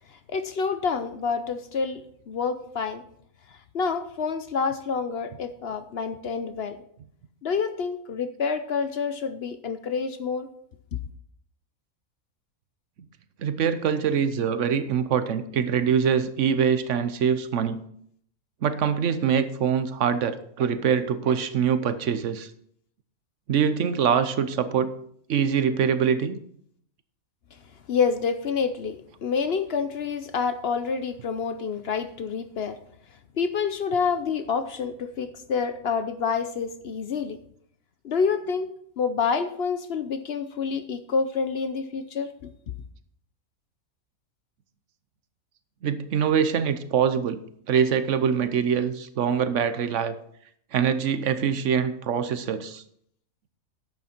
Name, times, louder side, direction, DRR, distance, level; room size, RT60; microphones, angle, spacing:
voice 1, 0.3-2.0 2.3-3.0 3.7-6.8 7.4-10.5 27.9-32.8 33.4-37.4 38.0-38.7 39.0-42.5, left 5 dB, 55° left, 10 dB, 0.8 m, -28 dB
voice 2, 13.4-17.8 18.6-22.5 23.5-24.9 25.3-26.4 45.8-47.4 47.7-50.2 50.7-52.8, right 7 dB, 60° right, 12 dB, 1.1 m, -24 dB
11.0 x 8.1 x 4.4 m, 0.66 s
omnidirectional pair, 1.5 m